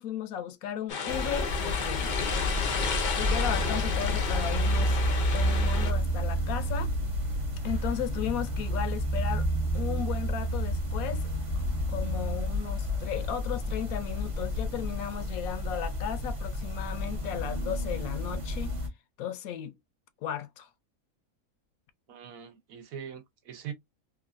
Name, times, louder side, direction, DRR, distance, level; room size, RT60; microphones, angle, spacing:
voice 1, 0.0-2.2 3.2-5.0 5.3-6.9 7.6-9.5 9.7-11.3 11.9-18.7 19.2-19.8 20.2-20.7, left 9 dB, 75° left, 1.0 m, -35 dB
sound 1, 0.9-5.9, left 6 dB, 55° left, 0.5 m, -32 dB
sound 2, 1.1-18.9, equal, 30° right, 0.6 m, -30 dB
voice 2, 22.1-23.7, right 8 dB, 75° right, 1.2 m, -42 dB
3.0 x 2.5 x 2.4 m
omnidirectional pair, 1.5 m